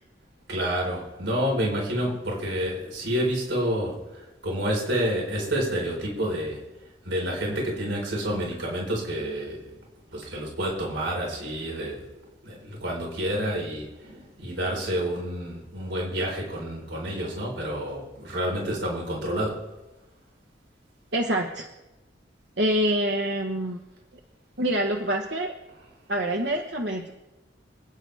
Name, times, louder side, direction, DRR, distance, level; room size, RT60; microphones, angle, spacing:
voice 1, 0.5-6.6 7.0-9.7 10.1-12.0 12.4-19.6, equal, 90° right, -2 dB, 4.6 m, -29 dB
voice 2, 21.1-21.7 22.6-23.8 24.6-25.5 26.1-27.1, right 1 dB, 70° right, 2 dB, 1.2 m, -26 dB
27.0 x 9.7 x 3.5 m, 1.0 s
head